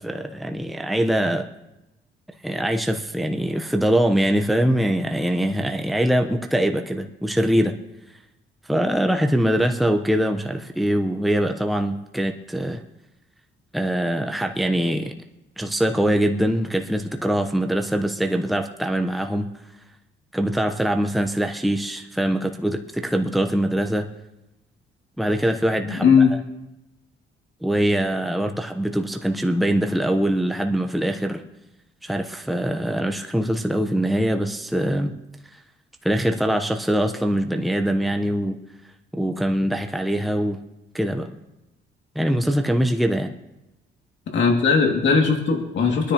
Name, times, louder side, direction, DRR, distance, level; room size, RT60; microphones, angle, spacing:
voice 1, 0.0-1.5 2.4-7.7 8.7-12.8 13.7-15.2 15.6-19.5 20.3-24.1 25.2-26.2 27.6-31.4 32.0-35.1 36.0-38.6 39.1-40.6 40.9-41.3 42.1-43.3, right 1 dB, ahead, 4 dB, 0.9 m, -23 dB
voice 2, 25.8-26.3 44.3-46.1, left 5 dB, 65° left, 1 dB, 2.5 m, -18 dB
25.5 x 10.0 x 3.0 m, 0.95 s
cardioid pair, 90°, 20 cm